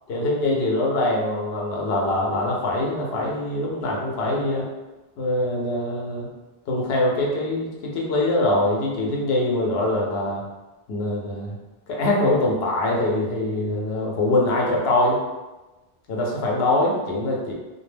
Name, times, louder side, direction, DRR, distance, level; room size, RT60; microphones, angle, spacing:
voice 1, 0.1-4.7 5.2-6.3 6.7-10.4 10.9-11.6 11.9-15.2 16.1-17.5, left 1 dB, 75° left, -2 dB, 0.8 m, -23 dB
2.3 x 2.2 x 3.2 m, 1.1 s
omnidirectional pair, 1.0 m